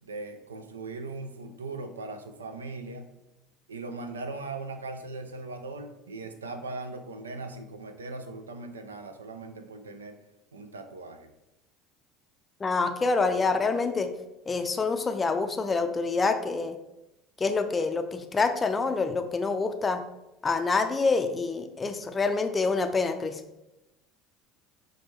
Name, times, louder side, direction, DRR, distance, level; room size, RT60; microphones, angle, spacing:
voice 1, 0.0-3.1 3.7-10.2 10.5-11.3, right 3 dB, 85° right, 8 dB, 0.3 m, -39 dB
voice 2, 12.6-14.1 14.5-16.8 17.4-20.0 20.4-23.4, left 4 dB, 25° left, 8 dB, 0.4 m, -26 dB
5.9 x 2.3 x 3.0 m, 0.94 s
hypercardioid pair, 70°, 0 cm